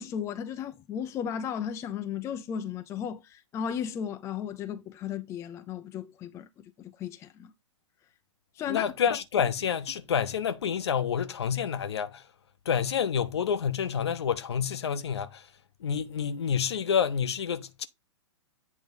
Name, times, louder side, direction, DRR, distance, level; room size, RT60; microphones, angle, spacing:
voice 1, 0.0-7.5 8.5-8.8, left 8 dB, 20° left, 0.5 m, -35 dB
voice 2, 8.7-12.2 12.6-15.5 15.8-17.9, left 7 dB, 60° left, 0.9 m, -28 dB
8.5 x 3.1 x 5.2 m
figure-of-eight pair, 110°, 16 cm